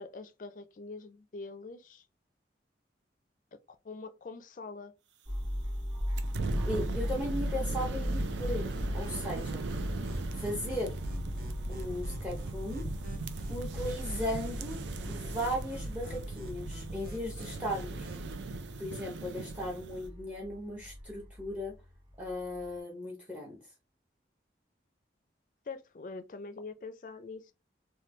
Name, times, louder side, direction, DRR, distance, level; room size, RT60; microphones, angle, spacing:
voice 1, 0.0-2.0 3.8-4.9 25.7-27.5, left 3 dB, 45° left, 0.4 m, -44 dB
sound 1, 5.3-22.8, equal, 25° right, 1.2 m, -39 dB
sound 2, 6.2-20.1, right 3 dB, 85° right, 0.4 m, -39 dB
voice 2, 6.6-9.6 10.3-10.9 11.7-12.8 13.5-14.8 15.1-18.1 18.8-21.7 22.2-23.6, left 1 dB, 10° right, 0.7 m, -37 dB
sound 3, 7.7-18.3, right 1 dB, 55° right, 0.8 m, -51 dB
3.1 x 2.2 x 3.1 m
head